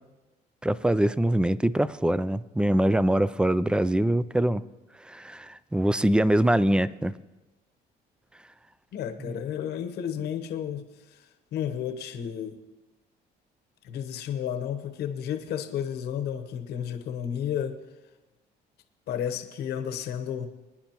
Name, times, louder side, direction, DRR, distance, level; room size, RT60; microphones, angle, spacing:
voice 1, 0.6-4.6 5.0-7.1 9.3-9.4, right 1 dB, 5° right, 17 dB, 0.3 m, -23 dB
voice 2, 8.9-11.2 11.5-12.6 13.8-17.8 19.1-20.5, left 9 dB, 75° left, 7 dB, 1.0 m, -32 dB
23.0 x 10.0 x 3.0 m, 1.1 s
cardioid pair, 110°, 17 cm